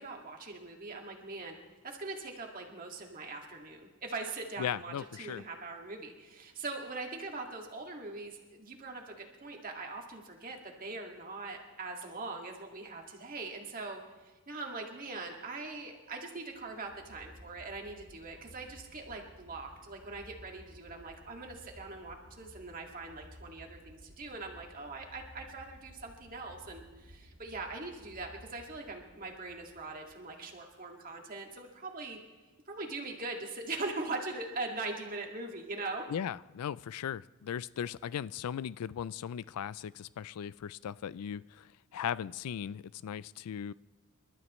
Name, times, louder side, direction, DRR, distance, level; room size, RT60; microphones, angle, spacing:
voice 1, 0.0-1.6 1.8-32.2 32.7-36.1, right 3 dB, 40° right, 1 dB, 2.0 m, -41 dB
voice 2, 4.6-5.4 36.1-43.7, left 9 dB, 85° left, 19 dB, 0.3 m, -38 dB
sound 1, 16.5-30.7, equal, 85° right, 2.1 m, -56 dB
28.5 x 12.5 x 3.1 m, 1.2 s
head